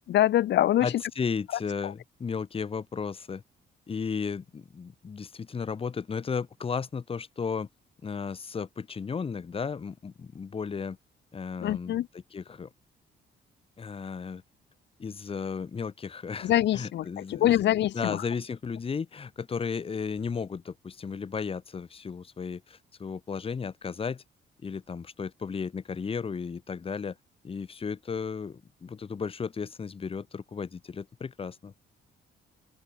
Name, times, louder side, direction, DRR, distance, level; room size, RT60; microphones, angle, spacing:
voice 1, 0.1-0.9 11.6-12.1 16.4-18.2, left 13 dB, 60° left, 0.6 m, -24 dB
voice 2, 0.8-3.4 3.9-7.7 8.0-11.0 11.3-12.7 13.8-14.4 15.0-17.6 17.9-24.2 24.6-27.2 27.4-31.8, left 5 dB, 30° left, 0.8 m, -34 dB
open air
cardioid pair, 90°, 20 cm